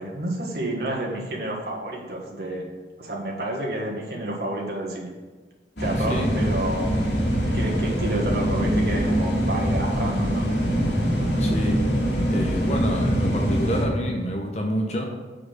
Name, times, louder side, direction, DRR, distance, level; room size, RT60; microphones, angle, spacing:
voice 1, 0.0-2.7 3.0-5.1 5.8-7.0 7.5-10.5, right 1 dB, 60° right, -2 dB, 1.6 m, -30 dB
sound 1, 5.8-13.9, equal, 75° left, 2.2 m, -23 dB
voice 2, 6.0-6.3 11.4-11.8 12.3-15.1, equal, 40° left, 1 dB, 0.8 m, -28 dB
6.6 x 4.8 x 6.6 m, 1.3 s
head